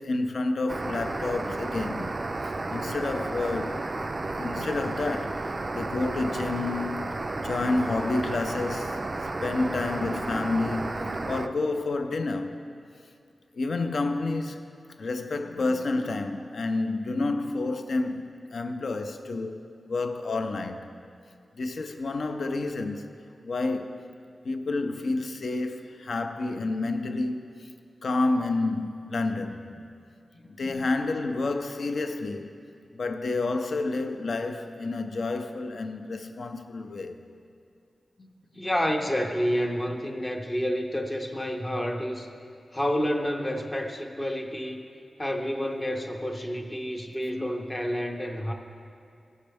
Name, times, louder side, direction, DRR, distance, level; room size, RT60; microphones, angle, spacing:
voice 1, 0.0-3.9 4.3-12.7 13.5-14.6 15.0-20.9 21.5-23.2 23.4-24.1 24.4-27.7 28.0-29.7 30.4-32.6 32.9-37.2, left 3 dB, 60° left, 0.5 m, -30 dB
sound 1, 0.7-11.5, right 2 dB, 30° right, 0.3 m, -32 dB
voice 2, 30.3-30.9 38.5-42.3 42.7-44.8 45.2-48.5, equal, 15° left, 0.6 m, -29 dB
16.0 x 6.4 x 3.4 m
wide cardioid pair, 160°, 0 cm